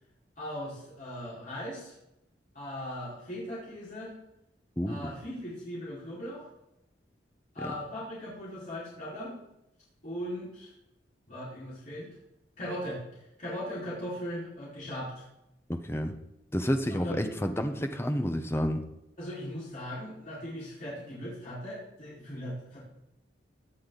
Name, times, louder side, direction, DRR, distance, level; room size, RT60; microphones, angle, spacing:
voice 1, 0.4-2.0 2.5-4.1 4.9-6.5 7.5-9.4 10.0-10.7 11.3-12.1 12.6-13.0 13.4-15.2 16.9-17.3 19.2-22.8, equal, 45° left, -9 dB, 4.7 m, -38 dB
voice 2, 4.8-5.1 15.7-16.1 16.5-18.8, equal, 15° left, 6 dB, 0.9 m, -30 dB
17.0 x 10.5 x 4.0 m, 0.86 s
head